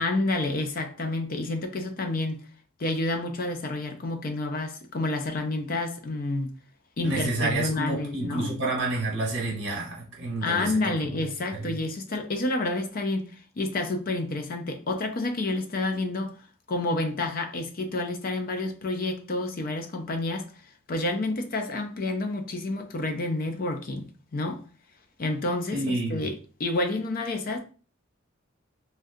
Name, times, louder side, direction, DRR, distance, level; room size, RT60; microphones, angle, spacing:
voice 1, 0.0-2.4 2.8-6.6 7.0-8.5 10.4-16.3 16.7-20.5 20.9-24.6 25.2-26.3 26.6-27.6, left 2 dB, 45° left, 0.4 m, -29 dB
voice 2, 7.0-11.2 11.5-11.8 25.7-26.3, right 2 dB, 60° right, 1.2 m, -29 dB
3.6 x 2.2 x 2.6 m
head